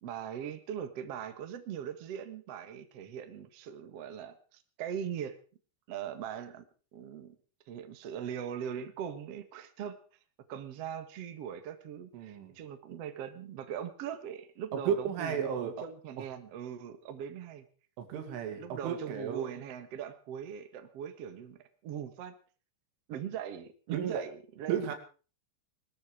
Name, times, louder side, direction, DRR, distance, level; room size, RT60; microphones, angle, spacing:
voice 1, 0.0-5.4 5.9-6.6 6.9-7.3 7.7-10.0 10.5-17.6 18.5-22.3 23.1-24.8, right 9 dB, 65° right, 9 dB, 1.5 m, -40 dB
voice 2, 12.1-12.6 14.7-15.9 18.0-19.6 23.9-24.3 24.7-25.0, right 8 dB, 85° right, 6 dB, 4.8 m, -34 dB
20.0 x 13.5 x 4.9 m, 0.38 s
omnidirectional pair, 5.5 m